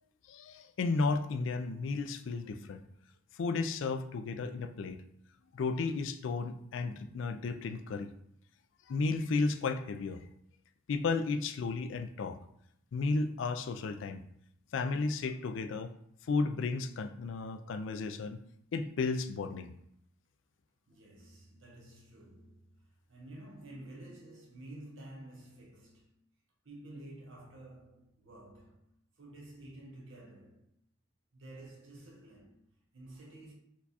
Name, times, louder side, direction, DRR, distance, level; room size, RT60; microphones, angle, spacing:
voice 1, 0.3-2.8 3.3-5.0 5.5-8.1 8.9-10.2 10.9-12.4 12.9-14.2 14.7-15.9 16.3-18.4 18.7-19.7, left 4 dB, 70° left, 0.4 m, -33 dB
voice 2, 15.2-15.6 20.9-26.1 26.6-28.8 29.2-30.7 31.3-33.5, right 1 dB, 80° right, 1.3 m, -51 dB
4.6 x 2.3 x 4.1 m
head